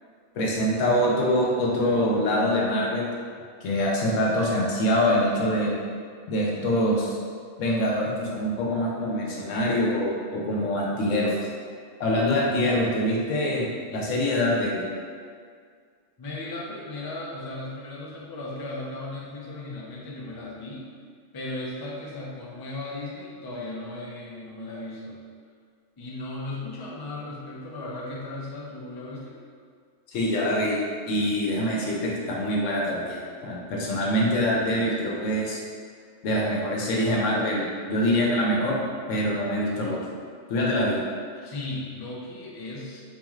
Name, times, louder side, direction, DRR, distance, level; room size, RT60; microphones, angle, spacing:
voice 1, 0.3-3.1 3.6-5.7 6.3-7.2 7.6-11.4 12.0-14.9 30.1-30.8 31.1-35.6 36.2-38.8 39.1-40.0 40.5-41.0, equal, 90° left, -3 dB, 1.0 m, -24 dB
voice 2, 16.2-20.9 21.3-25.2 26.0-29.4 41.4-43.0, left 2 dB, 40° left, -5 dB, 0.3 m, -36 dB
4.0 x 3.0 x 2.4 m, 2.1 s
omnidirectional pair, 1.3 m